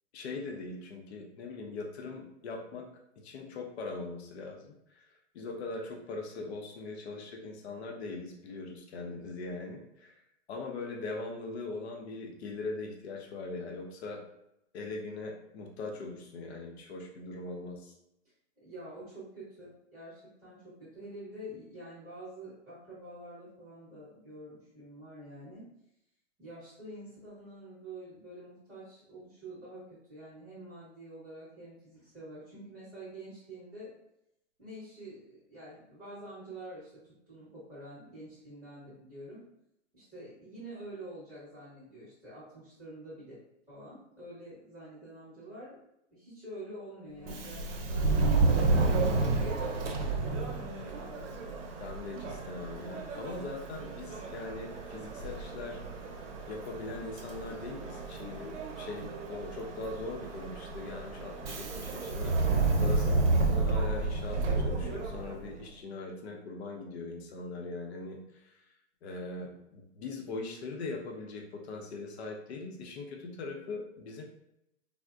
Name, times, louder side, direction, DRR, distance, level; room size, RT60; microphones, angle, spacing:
voice 1, 0.1-2.9 3.2-5.0 5.3-10.2 10.5-14.2 14.7-17.9 51.8-55.8 56.5-62.4 62.8-68.5 69.0-74.2, left 3 dB, 60° left, 1 dB, 0.7 m, -41 dB
voice 2, 18.6-25.6 26.4-29.8 30.1-33.9 34.6-39.4 39.9-43.4 43.7-45.8 46.1-51.6, right 1 dB, ahead, -11 dB, 0.9 m, -47 dB
Subway metro underground, 47.2-65.6, right 3 dB, 80° right, 0.8 m, -31 dB
3.5 x 2.1 x 2.4 m, 0.80 s
hypercardioid pair, 165°, 36 cm